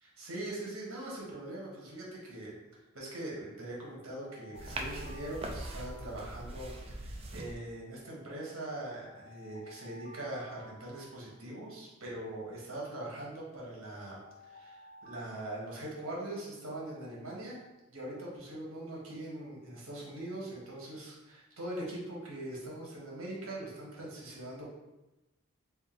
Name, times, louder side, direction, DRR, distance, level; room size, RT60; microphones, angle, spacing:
voice 1, 0.0-2.5 2.9-17.6 17.9-24.7, right 1 dB, 85° right, -4 dB, 1.2 m, -42 dB
Alarm, 4.1-6.7 8.0-11.7 13.0-16.3, left 1 dB, 50° left, 1.0 m, -56 dB
sound 1, 4.5-7.5, right 1 dB, 25° right, 0.3 m, -41 dB
3.5 x 2.6 x 3.7 m, 1.0 s
head